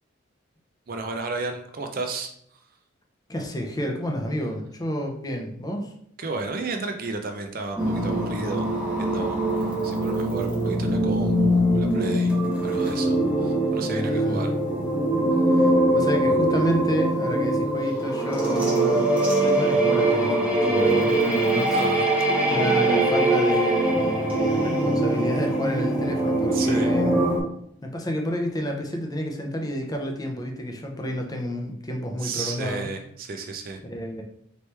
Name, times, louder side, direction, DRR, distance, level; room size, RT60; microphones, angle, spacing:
voice 1, 0.9-2.3 6.2-8.7 9.0-9.4 9.8-12.3 12.6-13.2 13.4-14.5 21.7-22.1 26.5-26.9 32.2-33.8, right 3 dB, 45° right, 5 dB, 0.5 m, -32 dB
voice 2, 3.3-5.9 13.8-14.6 15.5-19.1 19.4-21.8 22.5-27.2 27.8-32.9 33.9-34.2, equal, 20° left, 2 dB, 0.6 m, -30 dB
sound 1, 7.8-27.4, right 1 dB, 5° right, 1.0 m, -22 dB
4.2 x 3.1 x 3.3 m, 0.69 s
head